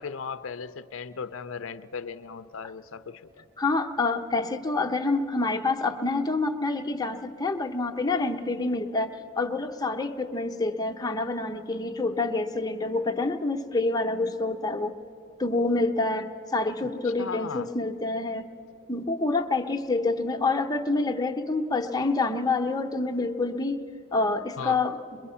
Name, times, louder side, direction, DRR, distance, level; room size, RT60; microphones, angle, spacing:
voice 1, 0.0-3.4 16.8-17.7 24.6-24.8, left 5 dB, 70° left, 0.4 m, -37 dB
voice 2, 3.6-15.0 15.4-18.5 18.9-23.8 24.1-25.2, left 3 dB, 20° left, 0.7 m, -27 dB
23.0 x 22.0 x 5.6 m
head